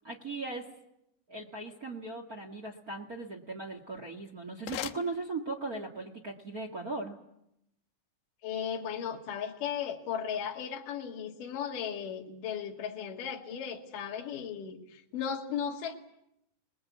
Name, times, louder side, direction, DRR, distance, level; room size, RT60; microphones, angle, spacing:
voice 1, 0.0-0.7 1.3-7.2, right 3 dB, 45° right, 1 dB, 1.2 m, -38 dB
sound 1, 3.8-5.9, left 13 dB, 80° left, 3.2 m, -43 dB
voice 2, 8.4-15.9, left 8 dB, 55° left, 0 dB, 3.5 m, -36 dB
27.5 x 20.5 x 8.4 m, 0.81 s
omnidirectional pair, 4.9 m